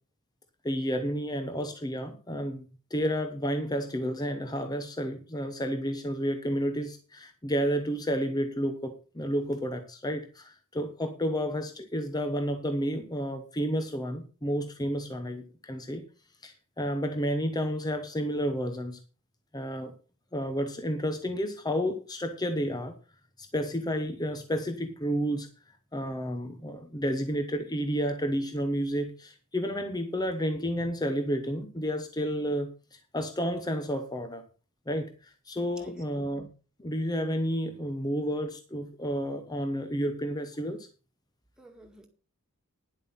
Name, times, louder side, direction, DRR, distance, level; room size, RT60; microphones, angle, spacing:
voice 1, 0.6-16.0 16.4-19.0 19.5-19.9 20.3-22.9 23.4-25.5 25.9-34.4 34.9-36.5 36.8-40.9, equal, 20° left, 8 dB, 1.0 m, -31 dB
voice 2, 35.6-36.0 41.6-42.1, right 1 dB, 5° right, 2 dB, 2.2 m, -52 dB
10.5 x 7.9 x 5.7 m, 0.35 s
head